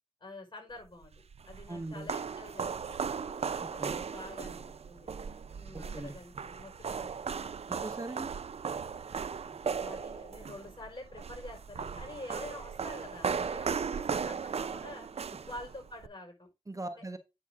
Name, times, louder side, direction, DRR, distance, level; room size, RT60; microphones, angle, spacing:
voice 1, 0.2-1.1 1.5-3.1 3.7-4.6 4.9-5.1 5.5-7.6 9.4-15.1 15.4-16.5, left 2 dB, 50° left, 3 dB, 5.0 m, -47 dB
sound 1, 1.0-16.1, right 6 dB, 85° right, 0.5 m, -37 dB
voice 2, 1.7-2.1 3.6-4.0 5.7-6.2 7.7-8.3 16.7-17.2, right 2 dB, 30° right, 9 dB, 1.1 m, -40 dB
8.8 x 6.2 x 3.6 m, 0.24 s
wide cardioid pair, 60°, 10 cm